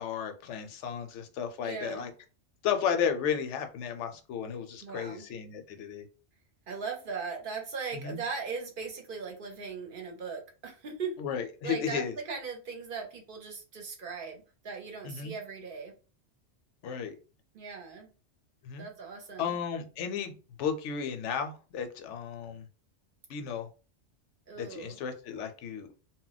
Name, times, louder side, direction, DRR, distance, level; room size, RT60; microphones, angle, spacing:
voice 1, 0.0-2.1 2.6-6.1 7.9-8.2 11.2-12.1 15.0-15.3 16.8-17.2 18.6-18.9 19.4-22.6 23.3-23.7 24.6-25.9, left 7 dB, 80° left, 6 dB, 0.9 m, -34 dB
voice 2, 1.6-2.1 4.8-5.2 6.7-11.2 11.6-15.9 17.5-18.1 18.8-19.6 24.5-25.0, right 5 dB, 55° right, 3 dB, 0.7 m, -39 dB
2.2 x 2.1 x 3.8 m, 0.34 s
omnidirectional pair, 1.2 m